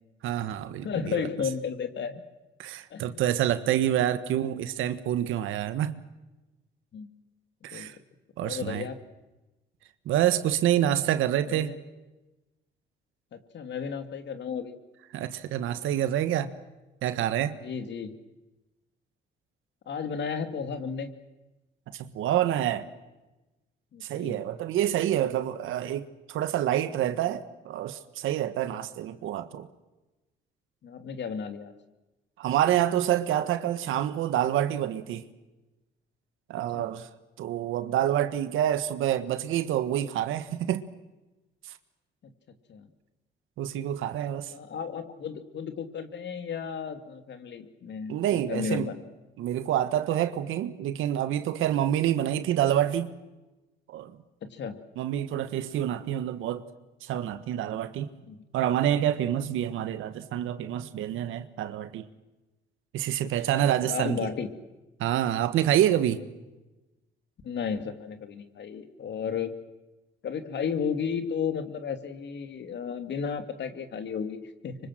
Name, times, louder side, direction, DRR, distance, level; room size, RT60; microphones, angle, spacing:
voice 1, 0.2-1.3 2.6-6.0 7.6-8.0 8.4-8.9 10.0-11.7 15.1-16.5 17.0-17.6 21.9-22.9 24.0-29.7 32.4-35.2 36.5-37.1 37.4-40.8 41.6-41.7 43.6-44.5 48.1-48.9 49.4-53.1 53.9-54.2 55.0-56.6 57.0-58.1 58.5-62.1 62.9-64.3 65.0-66.2, right 11 dB, 85° right, 1.6 m, -27 dB
voice 2, 0.8-2.2 2.9-3.2 6.9-7.1 7.7-7.9 8.4-9.0 11.5-11.8 13.3-14.7 17.6-18.1 19.9-21.1 23.9-24.4 30.8-31.7 36.7-36.9 42.7-42.9 44.2-48.9 54.4-54.8 58.3-58.4 63.8-64.5 67.4-69.5 70.2-74.8, left 6 dB, 60° left, 2.8 m, -33 dB
25.0 x 25.0 x 7.8 m
cardioid pair, 90°, 20 cm